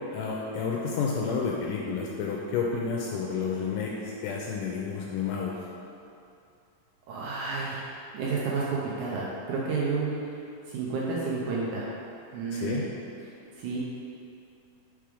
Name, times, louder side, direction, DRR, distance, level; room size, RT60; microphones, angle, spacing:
voice 1, 0.1-5.6 12.5-12.9, left 5 dB, 80° left, -2 dB, 1.9 m, -30 dB
voice 2, 7.1-7.9 8.1-10.4 10.7-11.9 12.3-12.8 13.6-13.8, right 4 dB, 80° right, -5 dB, 1.9 m, -30 dB
5.9 x 3.3 x 4.9 m, 2.6 s
omnidirectional pair, 4.0 m